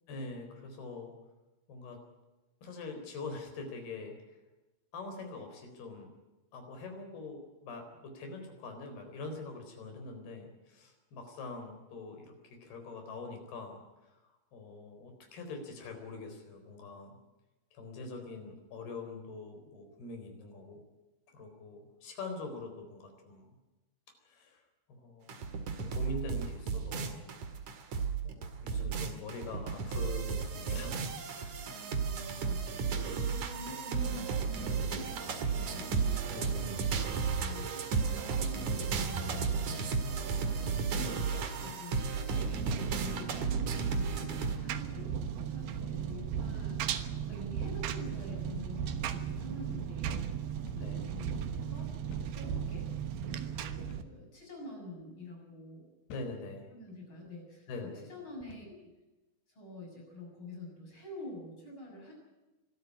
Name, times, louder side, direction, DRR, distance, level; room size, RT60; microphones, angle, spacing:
voice 1, 0.1-1.1 1.7-2.0 2.6-4.4 4.9-6.1 6.5-12.3 12.6-14.1 14.5-17.2 17.7-20.8 21.3-23.6 24.2-24.6 24.9-27.3 28.2-31.7 36.3-36.7 42.3-42.8 45.7-45.9 50.8-51.2 56.1-56.7 57.7-58.1, left 3 dB, 60° left, 5 dB, 5.9 m, -44 dB
sound 1, 25.3-44.6, right 5 dB, 50° right, 2.8 m, -34 dB
voice 2, 31.6-39.7 40.2-42.1 42.5-46.9 47.3-50.3 50.7-51.9 52.2-52.9 53.3-55.8 56.7-58.9 59.5-62.1, left 2 dB, 25° left, 0 dB, 7.7 m, -47 dB
Engine, 42.4-54.0, right 8 dB, 70° right, 2.9 m, -36 dB
sound 2, 50.7-51.0 51.3-51.4 52.1-52.4 53.9-54.2 54.9-55.1 56.1-56.4 57.2-57.4 58.4-58.8, left 4 dB, 80° left, 4.1 m, -54 dB
24.5 x 13.0 x 9.9 m, 1.1 s
omnidirectional pair, 5.1 m